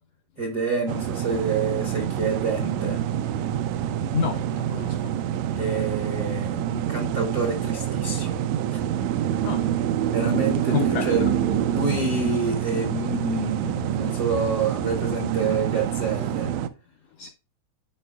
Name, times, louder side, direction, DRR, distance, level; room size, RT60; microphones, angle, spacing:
voice 1, 0.4-3.0 5.5-8.3 8.7-8.8 10.1-11.2 11.7-16.5, right 3 dB, 65° right, 0.9 m, -27 dB
sound 1, 0.9-16.7, right 10 dB, 80° right, 1.6 m, -26 dB
voice 2, 4.1-5.1 9.4-9.6 10.7-11.3 17.2-17.3, left 8 dB, 80° left, 1.5 m, -29 dB
9.9 x 5.1 x 2.3 m
omnidirectional pair, 3.5 m